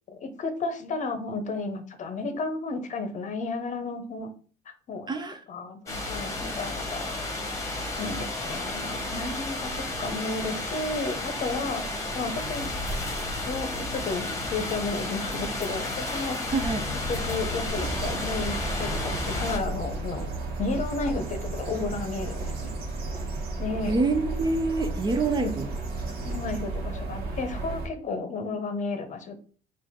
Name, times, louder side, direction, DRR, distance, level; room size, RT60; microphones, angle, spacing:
voice 1, 0.1-4.3 4.9-5.1 5.5-7.1 8.0-11.8 12.1-12.7 13.5-16.4 17.1-20.3 20.6-22.7 23.6-23.9 25.4-25.5 26.2-29.4, left 3 dB, 45° left, 8 dB, 0.7 m, -32 dB
voice 2, 5.1-5.4 6.4-6.6 16.5-16.9 23.9-25.7, right 3 dB, 25° right, 7 dB, 0.5 m, -26 dB
sound 1, 5.9-19.6, left 2 dB, 20° left, 1.0 m, -32 dB
sound 2, 17.7-27.9, right 2 dB, 65° right, 1.2 m, -33 dB
4.4 x 2.5 x 3.6 m, 0.41 s
cardioid pair, 110°, 17 cm